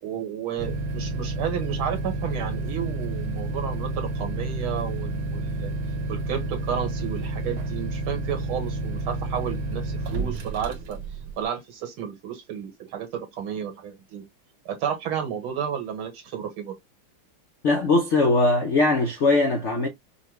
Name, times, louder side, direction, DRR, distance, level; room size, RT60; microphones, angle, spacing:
voice 1, 0.0-5.7 6.1-11.0 11.4-14.2 14.7-16.7, right 8 dB, 80° right, 2.2 m, -32 dB
sound 1, 0.6-11.4, right 2 dB, 60° right, 1.4 m, -30 dB
voice 2, 17.6-19.9, left 2 dB, 70° left, 0.6 m, -20 dB
5.7 x 2.2 x 3.0 m
omnidirectional pair, 2.3 m